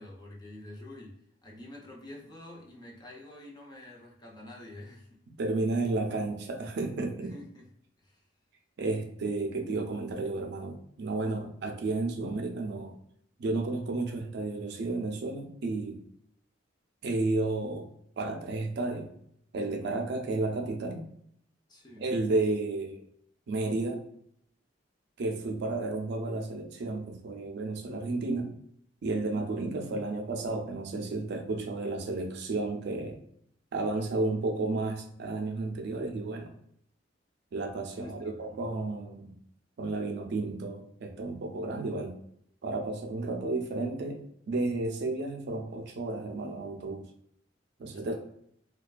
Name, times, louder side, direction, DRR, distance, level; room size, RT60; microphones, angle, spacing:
voice 1, 0.0-5.2 7.2-7.7 8.0-8.2 19.8-20.1 21.7-22.0 29.8-30.0 38.0-38.6 47.8-48.2, left 1 dB, 20° left, -1 dB, 0.5 m, -48 dB
voice 2, 5.4-7.3 8.8-12.9 13.4-16.0 17.0-17.9 18.2-19.1 19.5-21.0 22.0-23.0 23.5-24.0 25.2-28.5 29.0-33.2 33.7-36.5 37.5-39.4 39.8-42.2 42.6-44.2 44.5-47.0 47.8-48.2, right 2 dB, 65° right, 4 dB, 0.4 m, -32 dB
2.4 x 2.2 x 2.2 m, 0.71 s
head